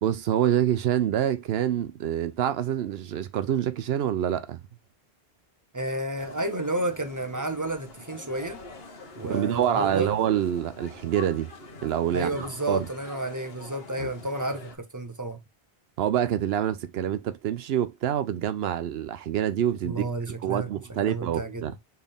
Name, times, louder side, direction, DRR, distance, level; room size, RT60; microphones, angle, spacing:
voice 1, 0.0-4.6 9.2-11.5 11.8-12.9 14.0-14.1 16.0-20.1 20.4-21.7, right 10 dB, 80° right, 0.8 m, -26 dB
voice 2, 5.7-8.6 9.2-10.1 12.1-15.4 19.8-20.7 21.0-21.8, right 2 dB, 20° right, 0.7 m, -31 dB
sound 1, 6.2-14.8, left 3 dB, 70° left, 1.3 m, -45 dB
4.5 x 3.4 x 3.5 m
omnidirectional pair, 1.0 m